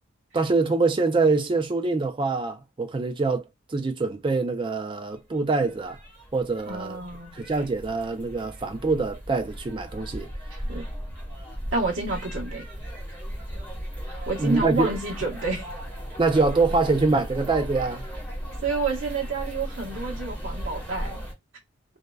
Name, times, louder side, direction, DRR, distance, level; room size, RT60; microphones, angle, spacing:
voice 1, 0.3-3.4 3.7-6.0 6.3-7.0 7.3-10.3 14.4-14.9 16.2-18.0, right 3 dB, 25° right, 0.3 m, -24 dB
sound 1, 5.1-21.3, equal, 5° left, 1.0 m, -36 dB
voice 2, 6.6-7.4 10.7-10.9 11.7-12.6 14.1-15.7 18.6-21.2, right 3 dB, 70° right, 1.0 m, -29 dB
2.7 x 2.2 x 2.2 m
head